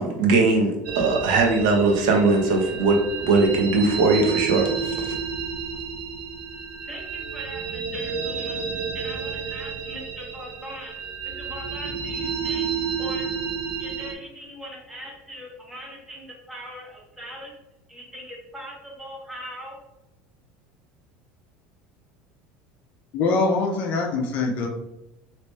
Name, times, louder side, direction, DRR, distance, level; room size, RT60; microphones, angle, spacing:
voice 1, 0.0-5.2, right 3 dB, 80° right, 2 dB, 0.8 m, -20 dB
sound 1, 0.8-14.1, right 6 dB, 45° right, 0.5 m, -31 dB
voice 2, 6.8-10.9 11.2-13.3 13.8-17.5 17.9-19.8, equal, 5° right, -3 dB, 0.8 m, -40 dB
voice 3, 23.1-24.7, left 3 dB, 40° left, 3 dB, 0.5 m, -23 dB
3.1 x 2.9 x 3.2 m, 0.92 s
cardioid pair, 180°, 4 cm